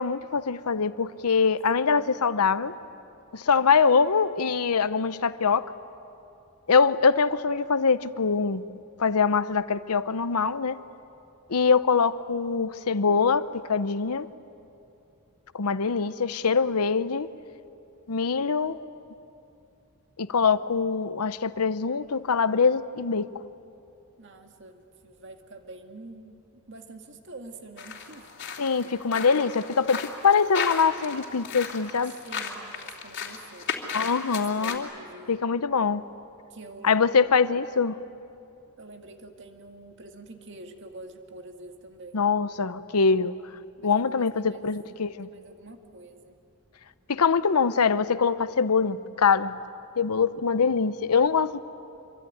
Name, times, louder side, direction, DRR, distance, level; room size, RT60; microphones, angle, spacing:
voice 1, 0.0-2.7 3.3-5.6 6.7-8.6 9.0-10.8 11.5-14.3 15.5-17.3 18.1-18.8 20.2-23.3 28.6-32.1 33.9-34.9 35.3-36.0 36.8-38.0 42.1-43.3 43.8-45.3 47.1-49.6 50.0-51.6, left 5 dB, 85° left, 14 dB, 0.8 m, -23 dB
voice 2, 1.3-2.1 24.2-28.3 28.6-29.0 32.0-35.4 36.5-37.1 38.8-42.2 43.8-44.7 45.3-46.4, right 2 dB, 55° right, 5 dB, 2.0 m, -47 dB
sound 1, 27.8-34.8, left 5 dB, 50° left, 2.9 m, -35 dB
26.0 x 24.5 x 9.4 m, 2.7 s
head